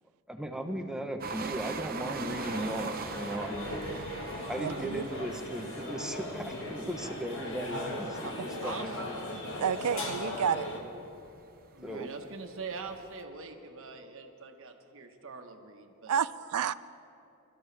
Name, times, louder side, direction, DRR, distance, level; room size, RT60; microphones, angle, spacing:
voice 1, 0.3-3.6 4.5-9.3 11.8-12.1, right 1 dB, 5° right, 4 dB, 0.9 m, -37 dB
sound 1, 1.2-13.2, right 4 dB, 40° right, 0.8 m, -43 dB
sound 2, 2.3-10.8, left 1 dB, 60° left, 2.0 m, -38 dB
voice 2, 4.6-5.0 9.6-10.7 16.1-16.7, right 8 dB, 80° right, 17 dB, 0.4 m, -30 dB
voice 3, 11.7-16.1, right 4 dB, 60° right, 4 dB, 1.3 m, -43 dB
26.5 x 13.0 x 3.4 m, 2.7 s
head